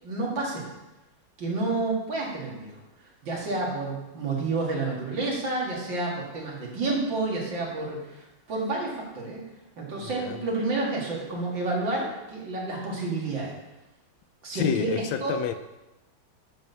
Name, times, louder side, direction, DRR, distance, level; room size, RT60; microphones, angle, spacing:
voice 1, 0.0-0.6 1.4-2.8 3.2-9.4 9.8-13.5 14.4-15.3, right 3 dB, 70° right, -3 dB, 2.8 m, -30 dB
voice 2, 10.0-10.4 14.5-15.5, left 9 dB, 80° left, 10 dB, 1.3 m, -29 dB
11.0 x 4.3 x 5.6 m, 1.0 s
omnidirectional pair, 2.1 m